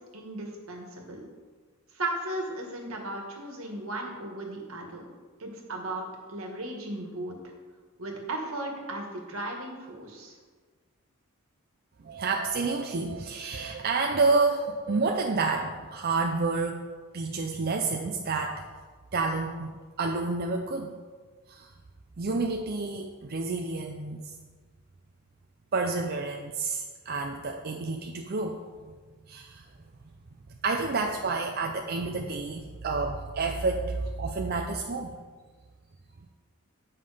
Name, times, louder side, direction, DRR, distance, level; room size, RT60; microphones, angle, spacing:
voice 1, 0.1-1.2 1.9-5.0 5.4-7.3 8.0-10.3, right 2 dB, 75° right, 1 dB, 1.6 m, -36 dB
voice 2, 12.0-16.8 17.1-18.6 19.1-21.0 21.5-21.7 22.2-24.3 25.7-28.6 29.3-29.6 30.6-35.1, right 3 dB, 45° right, 2 dB, 0.5 m, -29 dB
8.8 x 5.7 x 5.0 m, 1.5 s
head